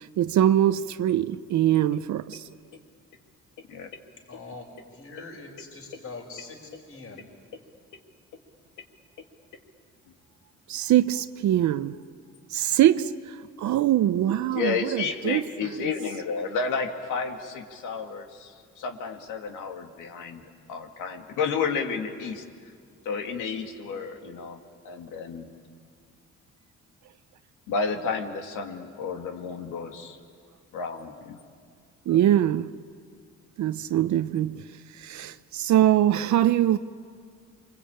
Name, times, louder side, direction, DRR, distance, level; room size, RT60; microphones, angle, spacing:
voice 1, 0.0-2.5 10.7-12.0 12.5-15.9 32.1-32.7 33.6-36.8, right 12 dB, 70° right, 0.7 m, -23 dB
voice 2, 4.3-6.6 6.9-7.2, left 3 dB, 50° left, 5.0 m, -42 dB
voice 3, 14.5-22.4 23.0-24.6 24.8-25.5 27.7-30.2 30.7-31.4, left 5 dB, 90° left, 2.3 m, -31 dB
28.0 x 23.5 x 8.8 m
cardioid pair, 90°, 30 cm